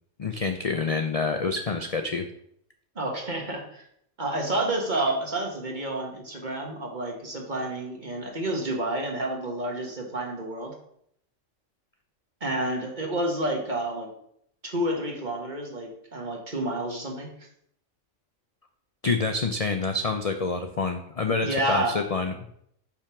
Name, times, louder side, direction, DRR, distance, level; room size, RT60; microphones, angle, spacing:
voice 1, 0.2-2.2 19.0-22.3, left 4 dB, 45° left, 6 dB, 0.5 m, -27 dB
voice 2, 2.9-3.8 4.2-10.7 12.4-14.1 14.6-17.3 21.4-22.0, right 1 dB, 40° right, 0 dB, 1.6 m, -29 dB
5.6 x 5.2 x 5.8 m, 0.71 s
omnidirectional pair, 1.3 m